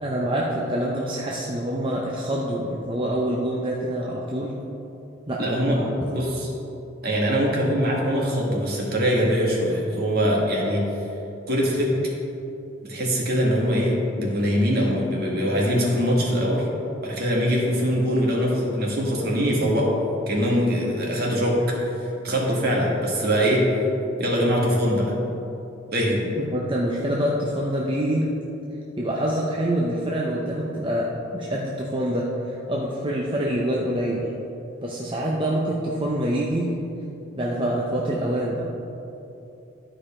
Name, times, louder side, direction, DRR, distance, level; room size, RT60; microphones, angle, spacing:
voice 1, 0.0-4.5 5.3-5.9 26.4-28.3 29.0-34.3 34.8-36.7 37.3-38.7, right 1 dB, 25° right, -4 dB, 0.6 m, -26 dB
voice 2, 5.4-5.8 6.1-6.5 7.0-10.9 11.5-11.9 12.8-16.7 17.0-19.9 20.3-21.6 22.2-23.6 24.2-25.1 25.9-26.2, equal, 50° right, -3 dB, 1.7 m, -22 dB
12.0 x 4.9 x 4.3 m, 2.9 s
head